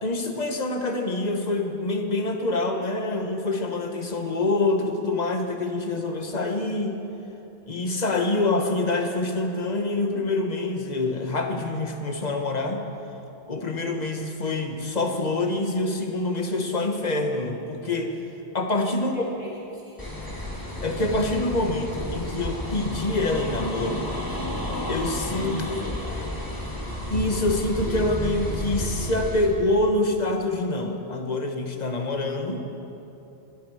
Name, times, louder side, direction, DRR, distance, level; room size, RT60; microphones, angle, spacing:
voice 1, 0.0-7.0 7.7-12.8 13.5-18.1 18.5-19.3 20.8-24.1 24.9-25.6 27.1-32.6, left 2 dB, 40° left, 4 dB, 1.3 m, -26 dB
voice 2, 18.9-20.2 25.5-26.9, equal, 70° right, -7 dB, 4.9 m, -45 dB
sound 1, 20.0-29.5, left 1 dB, 20° left, 2.2 m, -32 dB
sound 2, 20.0-29.0, right 1 dB, 45° right, 3.2 m, -44 dB
21.0 x 12.5 x 4.9 m, 2.9 s
omnidirectional pair, 1.1 m